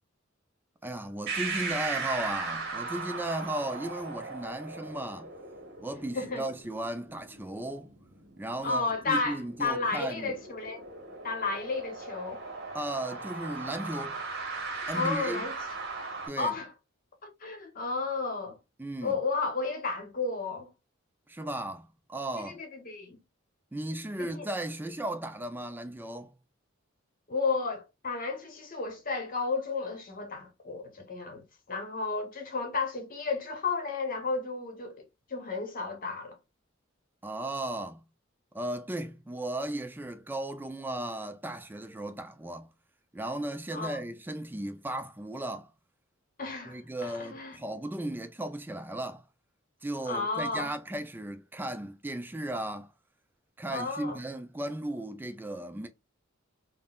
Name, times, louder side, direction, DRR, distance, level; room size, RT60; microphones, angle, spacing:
voice 1, 0.8-5.3 5.8-7.9 8.4-10.3 12.7-14.2 14.9-15.4 16.3-16.6 18.8-19.2 21.3-22.6 23.7-26.4 37.2-38.0 38.5-42.7 43.1-45.7 46.7-49.3 49.8-52.9 53.6-55.9, right 1 dB, 10° right, 0.3 m, -36 dB
sound 1, 1.3-16.3, right 4 dB, 55° right, 0.9 m, -38 dB
voice 2, 6.1-6.5 8.6-10.8 11.2-12.4 14.9-15.5 16.4-16.7 17.2-18.6 19.0-20.7 22.4-23.2 24.2-24.4 27.3-36.4 43.7-44.0 46.4-47.6 50.1-50.7 53.7-54.2, left 4 dB, 45° left, 0.8 m, -33 dB
3.6 x 2.0 x 2.2 m
head